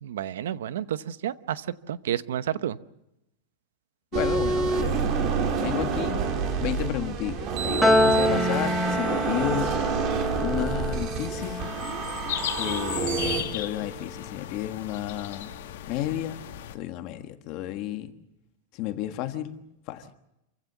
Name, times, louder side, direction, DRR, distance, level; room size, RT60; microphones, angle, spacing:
voice 1, 0.0-2.8 8.1-8.8, right 10 dB, 90° right, 0.9 m, -31 dB
voice 2, 4.1-5.2 5.6-6.2 6.6-9.8 10.4-11.6 12.5-15.5 15.9-16.4 16.7-18.1 18.7-19.6 19.9-20.1, left 13 dB, 35° left, 1.4 m, -32 dB
sound 1, 4.1-13.4, right 5 dB, 30° right, 2.5 m, -28 dB
Piano, 7.8-14.3, left 1 dB, ahead, 1.1 m, -28 dB
sound 2, 11.4-16.8, left 11 dB, 65° left, 2.1 m, -36 dB
28.0 x 16.0 x 7.4 m
supercardioid pair, 175°, 0 cm